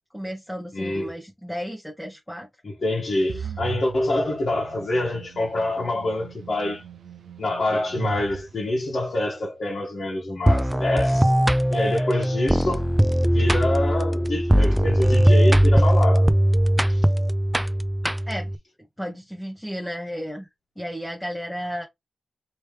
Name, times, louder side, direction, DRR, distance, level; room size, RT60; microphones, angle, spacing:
voice 1, 0.1-2.5 3.4-3.5 18.3-18.5 19.0-20.5 20.8-21.8, equal, 5° left, 1.0 m, -33 dB
voice 2, 0.7-1.1 2.6-6.8 7.4-11.3 11.7-12.8 13.2-16.3 16.9-17.1, left 2 dB, 60° left, 1.5 m, -26 dB
sound 1, 3.3-9.3, right 6 dB, 90° right, 0.7 m, -38 dB
sound 2, 10.5-18.6, equal, 10° right, 0.4 m, -19 dB
3.2 x 3.0 x 3.3 m
cardioid pair, 55°, 0 cm